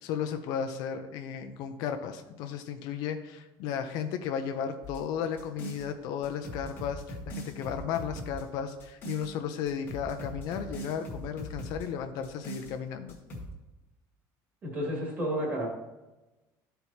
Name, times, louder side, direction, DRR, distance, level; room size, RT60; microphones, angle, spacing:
voice 1, 0.0-13.2, left 8 dB, 60° left, 6 dB, 0.5 m, -34 dB
sound 1, 4.8-5.9 6.2-9.3 9.7-11.9 12.2-12.7 13.1-13.5, right 1 dB, 30° left, 1.5 m, -41 dB
voice 2, 14.6-15.7, equal, 25° right, -3 dB, 2.1 m, -31 dB
12.5 x 4.5 x 2.8 m, 1.1 s
cardioid pair, 180°, 8 cm